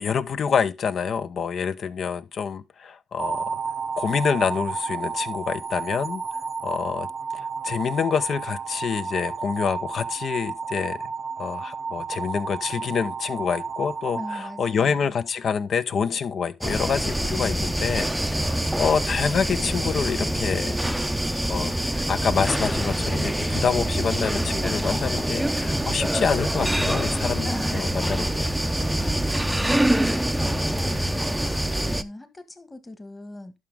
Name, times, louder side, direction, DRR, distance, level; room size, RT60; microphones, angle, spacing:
voice 1, 0.0-3.5 4.0-6.2 6.6-7.1 7.3-11.0 11.4-20.9 21.5-28.5, left 6 dB, 55° left, 0.8 m, -27 dB
sound 1, 3.2-15.4, right 5 dB, 40° right, 0.7 m, -32 dB
voice 2, 14.1-15.1 27.5-28.0 29.6-33.5, left 2 dB, 20° left, 1.7 m, -40 dB
sound 2, 16.6-32.0, right 1 dB, 5° right, 0.6 m, -25 dB
11.0 x 6.1 x 3.6 m
cardioid pair, 90°, 0 cm